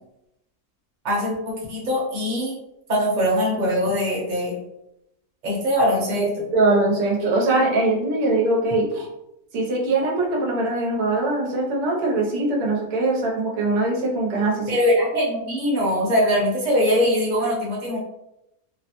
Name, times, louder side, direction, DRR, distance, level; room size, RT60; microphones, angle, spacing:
voice 1, 1.0-2.5 2.9-4.6 5.4-6.3 14.7-18.0, equal, 35° right, -4 dB, 0.9 m, -22 dB
voice 2, 6.1-9.1 9.5-14.8, right 2 dB, 85° right, -1 dB, 1.2 m, -22 dB
3.0 x 2.0 x 2.9 m, 0.85 s
omnidirectional pair, 1.6 m